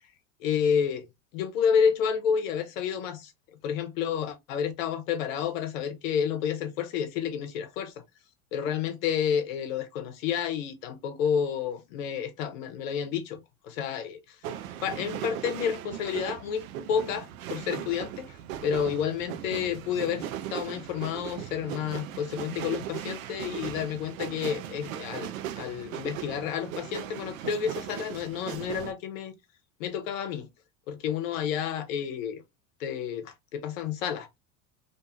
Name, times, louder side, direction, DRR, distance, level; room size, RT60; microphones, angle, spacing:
voice 1, 0.4-1.1 1.3-3.3 3.6-7.9 8.5-14.4 14.8-18.4 18.6-29.3 29.8-30.5 30.9-32.4 32.8-34.4, left 7 dB, 65° left, 0.8 m, -30 dB
sound 1, 14.4-28.9, right 11 dB, 70° right, 0.6 m, -38 dB
2.6 x 2.3 x 2.6 m
hypercardioid pair, 75°, 42 cm